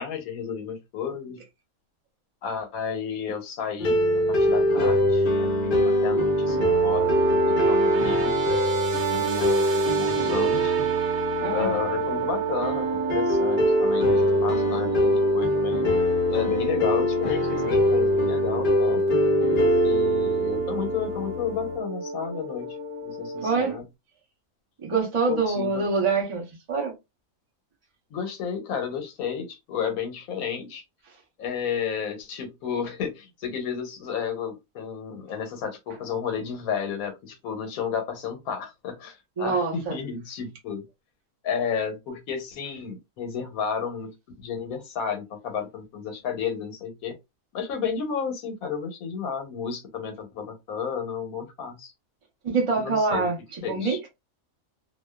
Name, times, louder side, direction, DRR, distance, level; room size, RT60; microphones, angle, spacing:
voice 1, 0.0-1.4 2.4-8.7 9.1-10.9 11.5-16.0 16.3-19.0 19.8-22.8 23.0-23.8 25.3-25.8 28.1-30.8 31.4-40.8 41.4-44.1 44.4-47.2 47.5-51.9 52.8-53.3 53.6-54.0, left 7 dB, 80° left, 1.2 m, -32 dB
sound 1, 3.8-21.8, equal, 45° left, 0.8 m, -23 dB
sound 2, 6.1-23.7, right 6 dB, 70° right, 1.1 m, -31 dB
voice 2, 11.4-11.8 23.4-23.7 24.8-26.9 39.4-40.0 52.4-54.0, right 4 dB, 45° right, 0.4 m, -25 dB
2.6 x 2.1 x 2.2 m
omnidirectional pair, 1.5 m